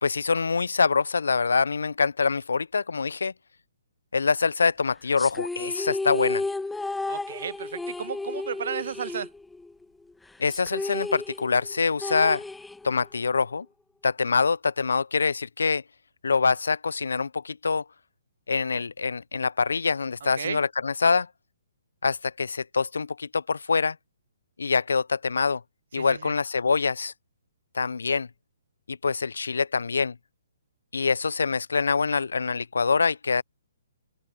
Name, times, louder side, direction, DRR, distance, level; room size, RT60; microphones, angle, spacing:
voice 1, 0.0-3.3 4.1-6.4 10.4-12.4 12.8-13.7 14.0-15.8 16.2-17.8 18.5-21.3 22.0-24.0 24.6-25.6 25.9-27.1 27.7-28.3 28.9-30.2 30.9-33.4, left 5 dB, 70° left, 0.9 m, -25 dB
sound 1, 5.2-9.8 10.1-10.2 10.5-13.2, left 3 dB, 5° left, 1.4 m, -32 dB
voice 2, 7.1-9.3 20.4-20.6 25.9-26.3, right 8 dB, 55° right, 0.5 m, -34 dB
figure-of-eight pair, 130°, 0 cm